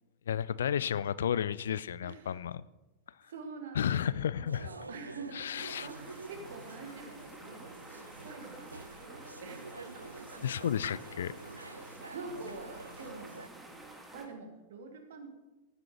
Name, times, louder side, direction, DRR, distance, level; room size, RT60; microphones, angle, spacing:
voice 1, 0.3-2.6 3.8-4.7 5.4-5.9 10.4-11.3, left 9 dB, 65° left, 0.3 m, -32 dB
voice 2, 2.0-2.5 3.2-6.0 6.3-7.8 8.2-9.9 11.6-15.3, right 4 dB, 60° right, 1.6 m, -47 dB
sound 1, 4.5-13.5, right 3 dB, 80° right, 0.4 m, -48 dB
sound 2, 5.6-14.3, right 2 dB, 10° right, 1.7 m, -51 dB
14.0 x 9.4 x 3.3 m
figure-of-eight pair, 90°, 0 cm